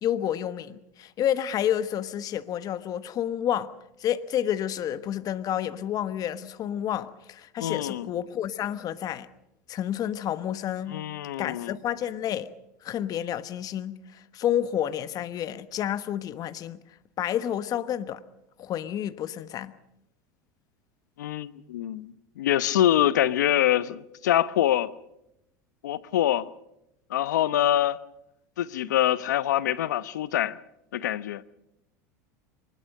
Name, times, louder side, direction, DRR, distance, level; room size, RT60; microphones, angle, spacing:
voice 1, 0.0-3.7 4.0-9.3 9.7-11.0 11.4-12.5 12.8-16.8 17.2-18.2 18.6-19.7, left 10 dB, 40° left, 1.2 m, -30 dB
voice 2, 7.6-8.1 10.9-11.8 21.2-24.9 25.8-26.5 27.1-28.0 28.6-30.6 30.9-31.4, left 12 dB, 85° left, 0.8 m, -25 dB
23.5 x 20.0 x 6.6 m
supercardioid pair, 105°, 9 cm